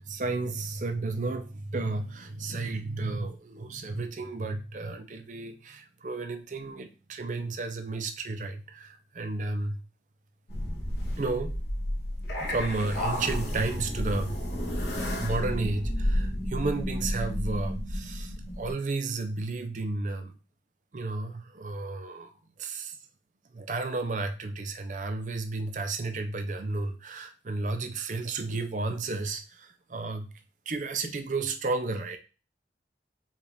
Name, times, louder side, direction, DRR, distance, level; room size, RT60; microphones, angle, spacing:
voice 1, 0.1-9.8 11.2-11.5 12.4-14.4 15.1-20.3 20.9-22.3 22.6-22.9 23.5-30.3 30.7-32.2, right 3 dB, 45° right, 7 dB, 0.5 m, -32 dB
sound 1, 10.5-18.7, equal, 65° left, 1.3 m, -31 dB
4.8 x 2.5 x 3.3 m, 0.34 s
head